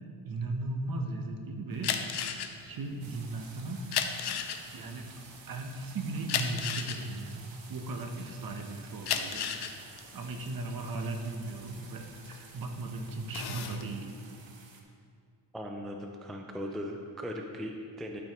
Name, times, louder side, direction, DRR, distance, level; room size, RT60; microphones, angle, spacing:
voice 1, 0.3-1.9 2.6-3.9 4.7-5.0 5.5-7.4 7.7-9.4 10.1-14.2, right 2 dB, 50° right, 4 dB, 0.9 m, -37 dB
sound 1, 1.7-8.3 8.8-12.7 13.1-13.8, left 8 dB, 60° left, 0.6 m, -34 dB
sound 2, 3.0-14.8, right 5 dB, 75° right, 1.1 m, -52 dB
voice 2, 15.5-18.2, equal, ahead, 2 dB, 0.3 m, -38 dB
12.0 x 5.7 x 3.0 m, 2.3 s
cardioid pair, 130°, 46 cm